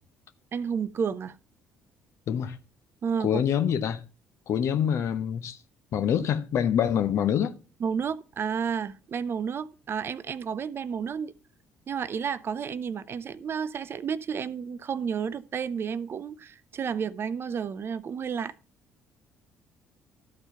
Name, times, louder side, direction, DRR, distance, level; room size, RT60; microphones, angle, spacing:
voice 1, 0.5-1.4 3.0-3.4 7.8-11.3 11.9-18.5, right 7 dB, 45° right, 0.6 m, -31 dB
voice 2, 3.2-4.0 4.5-5.6 5.9-7.5, left 9 dB, 55° left, 0.9 m, -25 dB
13.0 x 4.5 x 5.7 m
hypercardioid pair, 50°, 6 cm